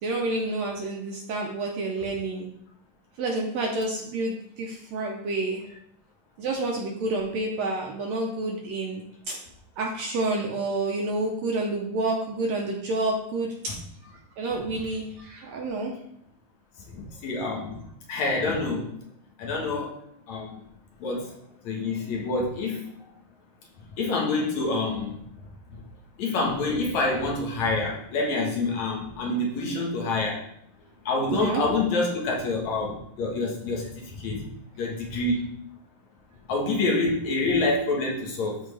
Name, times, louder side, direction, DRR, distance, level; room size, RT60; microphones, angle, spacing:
voice 1, 0.0-2.5 3.2-5.6 6.4-9.4 9.8-13.8 14.4-15.9 31.3-31.6, right 2 dB, 70° right, 0 dB, 1.7 m, -29 dB
voice 2, 16.9-17.8 18.1-18.9 19.4-19.9 20.3-20.5 21.0-21.3 21.6-22.8 24.0-25.2 25.7-25.8 26.2-30.4 31.1-34.4 34.8-35.5 36.5-38.6, left 2 dB, 65° left, -1 dB, 2.5 m, -27 dB
12.5 x 4.3 x 3.3 m, 0.71 s
omnidirectional pair, 3.8 m